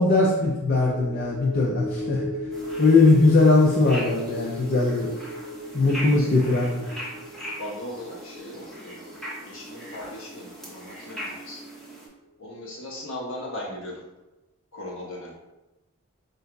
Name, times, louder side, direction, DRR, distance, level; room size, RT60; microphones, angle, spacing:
voice 1, 0.0-2.2 2.8-5.1 5.7-6.9, left 3 dB, 40° left, -3 dB, 0.4 m, -20 dB
sound 1, 0.7-11.3 11.6-11.8, equal, 70° right, 0.7 m, -37 dB
sound 2, 2.5-12.1, equal, ahead, 0.8 m, -39 dB
voice 2, 5.8-6.3 7.6-11.7 12.4-14.0 14.7-15.3, left 1 dB, 70° left, -4 dB, 1.2 m, -38 dB
7.6 x 2.6 x 2.3 m, 1.0 s
head